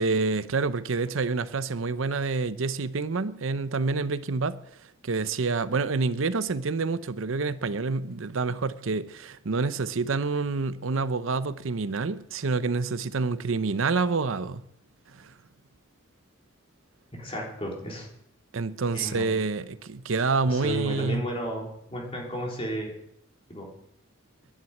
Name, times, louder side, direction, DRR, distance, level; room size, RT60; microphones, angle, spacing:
voice 1, 0.0-4.6 5.0-14.6 15.2-15.3 18.5-21.2, right 4 dB, 75° right, 0.7 m, -27 dB
voice 2, 17.1-18.1 18.9-19.3 20.5-22.9 23.5-23.7, right 1 dB, 30° left, 3.7 m, -33 dB
11.0 x 10.0 x 9.1 m
head